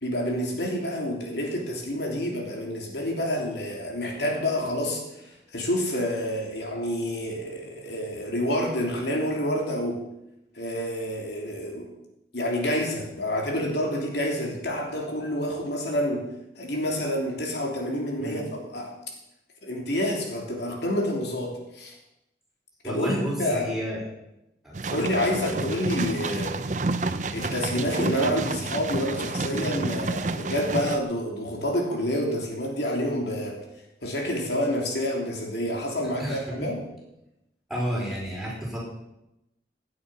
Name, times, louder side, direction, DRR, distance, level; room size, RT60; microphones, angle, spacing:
voice 1, 0.0-10.0 10.5-11.9 12.3-16.2 16.6-18.9 19.6-21.9 22.8-23.7 24.9-26.6 27.3-33.6 34.0-36.9, equal, 75° left, 0 dB, 3.1 m, -28 dB
voice 2, 22.8-24.0 24.6-25.0 36.2-36.8 37.7-38.8, equal, ahead, -5 dB, 4.6 m, -31 dB
sound 1, 24.7-31.0, right 3 dB, 45° right, 0.7 m, -30 dB
17.5 x 8.9 x 5.6 m, 0.89 s
head